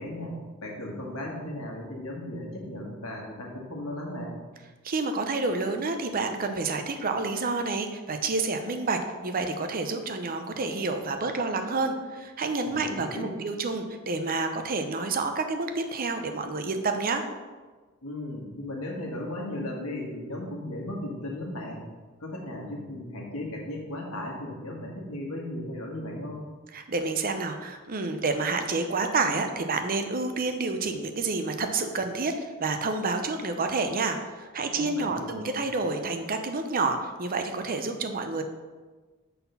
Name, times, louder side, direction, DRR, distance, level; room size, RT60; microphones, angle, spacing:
voice 1, 0.0-4.3 12.7-13.4 18.0-21.8 22.2-26.4 34.8-35.5, left 1 dB, 85° left, -1 dB, 1.6 m, -36 dB
voice 2, 4.8-17.2 26.7-38.4, right 3 dB, 45° right, 6 dB, 0.7 m, -29 dB
6.0 x 4.2 x 5.6 m, 1.3 s
head